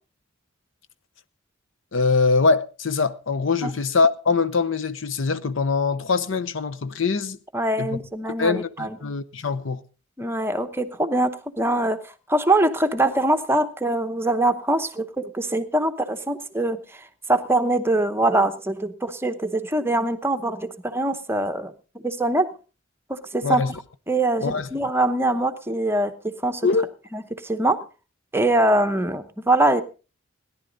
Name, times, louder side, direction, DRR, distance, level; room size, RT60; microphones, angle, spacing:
voice 1, 1.9-7.4 7.8-8.0 8.4-9.8 23.4-23.8 24.4-24.7 26.6-26.9, left 4 dB, 70° left, 0.7 m, -23 dB
voice 2, 7.5-9.0 10.2-12.0 12.3-16.8 17.3-21.7 22.0-22.5 23.1-23.6 24.1-26.6 27.1-27.8 28.3-29.8, right 2 dB, 10° right, 0.8 m, -23 dB
17.5 x 10.5 x 3.9 m
head